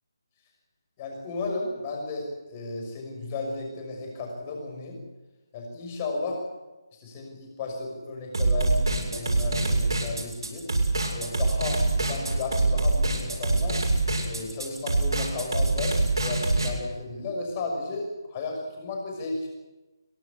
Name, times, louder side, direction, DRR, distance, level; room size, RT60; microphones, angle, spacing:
voice 1, 1.0-5.0 5.5-6.4 7.0-10.7 11.1-13.8 14.3-19.5, left 3 dB, 25° left, 1 dB, 6.0 m, -33 dB
sound 1, 8.3-16.7, right 2 dB, 75° right, 7.4 m, -25 dB
23.5 x 18.5 x 8.6 m, 1.1 s
figure-of-eight pair, 165°, 2 cm